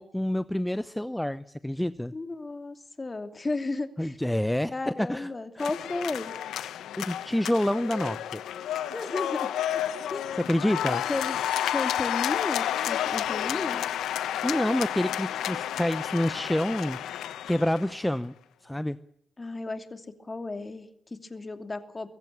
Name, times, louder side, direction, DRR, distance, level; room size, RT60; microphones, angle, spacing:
voice 1, 0.0-2.1 4.0-4.7 5.0-5.6 7.0-8.4 10.4-11.0 14.4-17.0 17.5-18.3 18.6-19.0, left 1 dB, 10° left, 15 dB, 0.8 m, -28 dB
voice 2, 2.1-4.2 4.7-6.3 8.9-9.8 10.1-10.3 10.9-11.4 11.7-13.8 19.4-22.1, left 3 dB, 30° left, 8 dB, 2.8 m, -34 dB
sound 1, 5.6-18.0, left 11 dB, 80° left, 1.1 m, -31 dB
24.5 x 15.5 x 8.6 m, 0.77 s
supercardioid pair, 45°, 0 cm